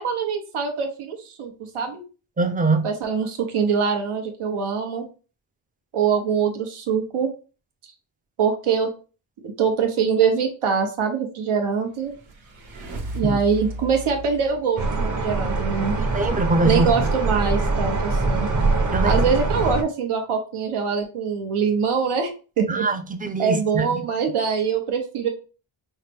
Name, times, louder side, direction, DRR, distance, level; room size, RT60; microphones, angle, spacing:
voice 1, 0.0-2.0 2.8-5.0 5.9-7.3 8.4-8.9 9.4-12.1 13.1-16.0 16.6-18.5 19.0-22.3 22.6-22.9 23.4-25.3, right 6 dB, 85° right, 1.0 m, -23 dB
voice 2, 2.4-2.9 13.2-13.4 16.0-16.9 18.9-19.2 22.7-24.1, right 3 dB, 20° right, 0.4 m, -23 dB
sound 1, 11.9-15.4, right 1 dB, 70° right, 1.3 m, -36 dB
sound 2, 14.8-19.8, right 3 dB, 35° right, 0.9 m, -23 dB
5.5 x 2.2 x 3.4 m
wide cardioid pair, 105°, 49 cm